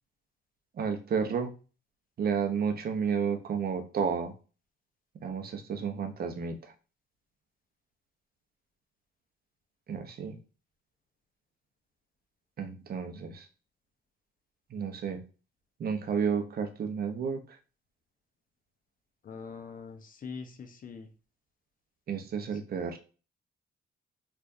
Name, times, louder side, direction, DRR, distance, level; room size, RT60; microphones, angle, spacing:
voice 1, 0.8-1.5 2.2-4.3 5.2-6.7 9.9-10.4 12.6-13.5 14.7-15.2 15.8-17.4 22.1-23.0, right 6 dB, 50° right, 7 dB, 0.7 m, -31 dB
voice 2, 19.2-21.1 22.5-22.9, left 5 dB, 45° left, 7 dB, 0.6 m, -44 dB
4.6 x 2.5 x 2.5 m, 0.36 s
cardioid pair, 90°, 20 cm